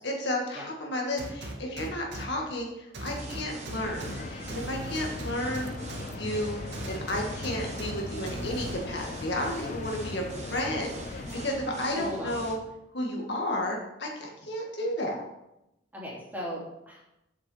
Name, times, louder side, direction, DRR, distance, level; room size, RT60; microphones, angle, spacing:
voice 1, 0.0-5.7 6.1-6.6 6.9-12.6 12.9-15.2, left 1 dB, 65° left, -1 dB, 2.1 m, -32 dB
sound 1, 1.2-2.2 2.9-4.1 4.5-6.0 6.7-7.9 8.3-8.7, right 1 dB, 60° right, 1.9 m, -38 dB
sound 2, 3.2-12.6, right 2 dB, 35° right, 1.3 m, -43 dB
sound 3, 3.8-11.5, left 3 dB, 40° left, 0.4 m, -40 dB
voice 2, 11.9-12.4 15.9-17.0, equal, 10° right, -6 dB, 3.0 m, -37 dB
8.5 x 7.4 x 5.6 m, 0.88 s
head